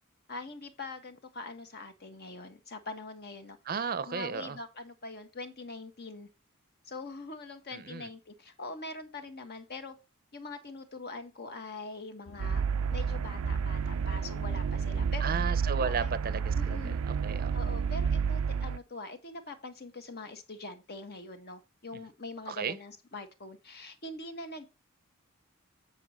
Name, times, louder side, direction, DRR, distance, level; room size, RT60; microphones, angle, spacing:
voice 1, 0.3-6.3 6.8-9.9 10.3-12.6 12.9-15.3 15.8-16.1 16.5-17.0 17.5-24.7, left 2 dB, 50° left, 1.5 m, -43 dB
voice 2, 3.7-4.6 7.7-8.1 15.2-17.5 22.5-22.8, right 5 dB, 45° right, 0.6 m, -34 dB
sound 1, 12.3-17.4, left 2 dB, 80° left, 1.1 m, -52 dB
sound 2, 12.4-18.8, right 6 dB, 85° right, 0.4 m, -30 dB
9.0 x 5.3 x 4.3 m
head